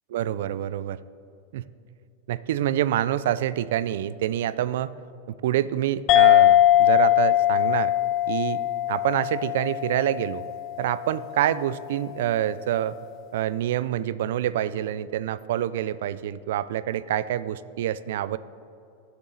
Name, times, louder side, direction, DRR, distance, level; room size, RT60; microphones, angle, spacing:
voice 1, 0.1-1.0 1.5-1.6 2.3-4.9 5.4-7.9 8.3-8.6 8.9-10.4 10.8-13.0 13.3-18.4, right 11 dB, 65° right, 16 dB, 0.4 m, -26 dB
sound 1, 6.1-11.0, left 13 dB, 30° left, 0.3 m, -20 dB
18.5 x 7.2 x 4.0 m, 2.6 s
supercardioid pair, 165°, 0 cm